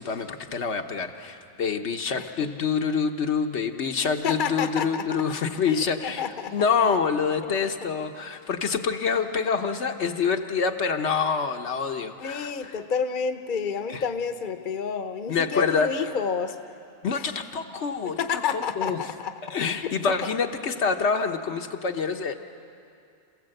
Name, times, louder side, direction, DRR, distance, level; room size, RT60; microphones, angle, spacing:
voice 1, 0.0-6.2 6.5-12.7 13.9-14.0 15.3-15.9 17.0-19.0 19.5-22.3, left 5 dB, 75° left, 5 dB, 1.3 m, -26 dB
voice 2, 2.2-2.5 4.2-5.1 5.6-6.5 7.4-8.1 12.2-16.5 17.1-17.3 18.0-19.3 19.8-19.9, left 6 dB, 50° left, 8 dB, 1.0 m, -30 dB
27.0 x 15.5 x 7.8 m, 2.5 s
omnidirectional pair, 1.2 m